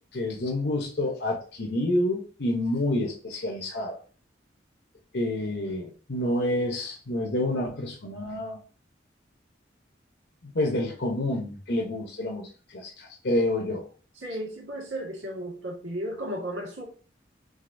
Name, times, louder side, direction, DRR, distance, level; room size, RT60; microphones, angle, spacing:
voice 1, 0.1-4.0 5.1-8.6 10.4-12.5 12.7-13.8, left 1 dB, 60° left, 0 dB, 0.8 m, -28 dB
voice 2, 14.1-16.8, equal, 85° right, -1 dB, 1.5 m, -34 dB
6.3 x 2.7 x 2.6 m, 0.38 s
head